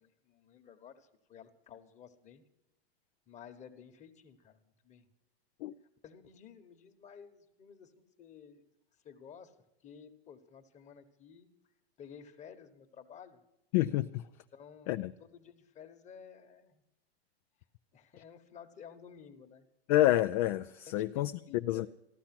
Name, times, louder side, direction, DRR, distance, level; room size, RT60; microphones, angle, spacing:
voice 1, 0.0-2.4 3.3-4.6 4.8-5.1 6.0-8.7 9.0-9.6 9.8-11.5 12.0-13.4 14.5-16.8 17.9-19.7 20.9-21.9, left 7 dB, 20° left, 7 dB, 1.3 m, -53 dB
voice 2, 13.7-14.2 14.9-15.1 19.9-21.3 21.6-21.9, left 14 dB, 35° left, 10 dB, 0.4 m, -28 dB
15.0 x 11.5 x 6.0 m, 0.87 s
hypercardioid pair, 140°, 32 cm